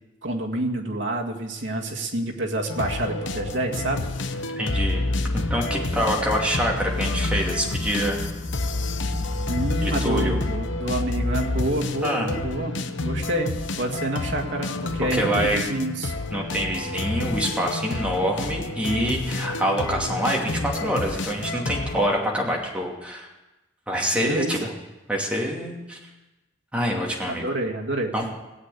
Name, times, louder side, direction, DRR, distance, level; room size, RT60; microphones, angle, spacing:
voice 1, 0.2-4.4 9.5-16.1 24.2-24.7 27.2-28.1, right 1 dB, 75° right, 1 dB, 2.0 m, -28 dB
sound 1, 2.7-22.1, left 2 dB, 80° left, 0.9 m, -30 dB
voice 2, 4.6-5.0 5.3-8.2 9.8-10.4 12.0-12.3 15.1-15.6 16.3-23.3 23.9-24.7 25.1-26.0 26.7-27.4 28.1-28.3, equal, 5° right, -2 dB, 2.6 m, -26 dB
sound 2, 4.7-11.8, left 2 dB, 20° left, 0.7 m, -29 dB
17.5 x 8.2 x 8.5 m, 1.1 s
head